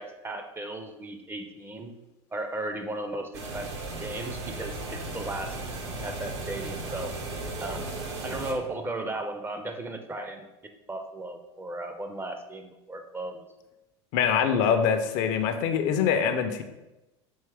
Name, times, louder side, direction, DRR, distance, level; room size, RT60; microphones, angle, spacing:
voice 1, 0.0-1.9 2.3-3.7 4.0-5.6 6.0-7.1 7.6-7.9 8.2-13.4, right 2 dB, 15° right, 6 dB, 0.4 m, -36 dB
sound 1, 3.3-8.5, right 2 dB, 75° right, 0.9 m, -36 dB
voice 2, 14.1-16.6, left 7 dB, 55° left, 8 dB, 0.5 m, -24 dB
4.6 x 3.0 x 3.3 m, 0.99 s
hypercardioid pair, 95°, 15 cm